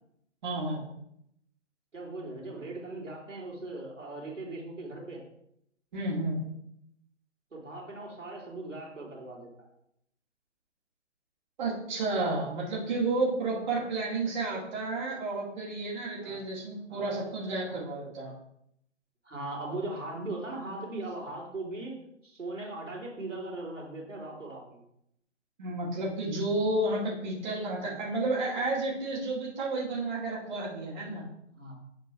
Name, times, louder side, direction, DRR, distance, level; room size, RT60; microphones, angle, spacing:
voice 1, 0.4-0.8 5.9-6.4 11.6-18.3 25.6-31.3, right 2 dB, 40° right, -5 dB, 2.2 m, -31 dB
voice 2, 1.9-5.2 7.5-9.7 13.6-13.9 16.2-16.4 16.9-17.3 17.6-17.7 19.2-22.0 22.2-24.8 27.8-28.0 31.5-31.7, right 2 dB, 80° right, -2 dB, 3.1 m, -39 dB
8.3 x 4.5 x 4.7 m, 0.76 s
figure-of-eight pair, 135°, 37 cm